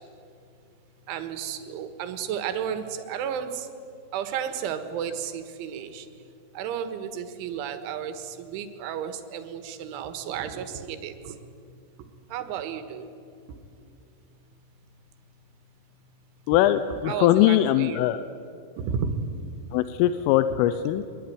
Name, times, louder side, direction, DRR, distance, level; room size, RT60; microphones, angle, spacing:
voice 1, 1.1-3.7 4.1-6.1 6.6-11.4 12.3-13.1 17.0-18.1 18.8-19.3, right 8 dB, 80° right, 9 dB, 3.9 m, -32 dB
voice 2, 16.5-18.2 19.7-21.0, left 13 dB, 90° left, 11 dB, 3.3 m, -21 dB
24.5 x 22.0 x 9.5 m, 2.6 s
omnidirectional pair, 5.6 m